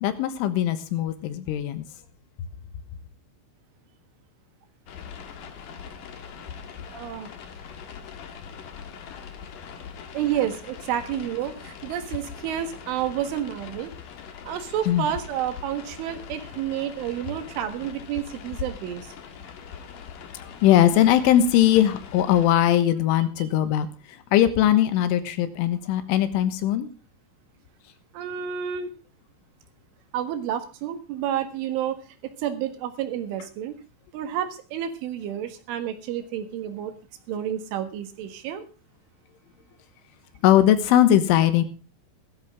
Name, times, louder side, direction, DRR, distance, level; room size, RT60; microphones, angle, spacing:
voice 1, 0.0-1.9 14.9-15.1 20.4-26.9 40.4-41.6, left 11 dB, 80° left, 11 dB, 3.7 m, -20 dB
sound 1, 4.9-22.5, left 7 dB, 60° left, 2.5 m, -41 dB
voice 2, 6.9-7.3 10.1-13.9 14.5-19.1 28.1-28.9 30.1-32.0 32.2-33.8 34.1-36.9 37.3-38.6, right 10 dB, 75° right, 9 dB, 4.0 m, -30 dB
16.0 x 13.5 x 3.6 m, 0.32 s
omnidirectional pair, 5.6 m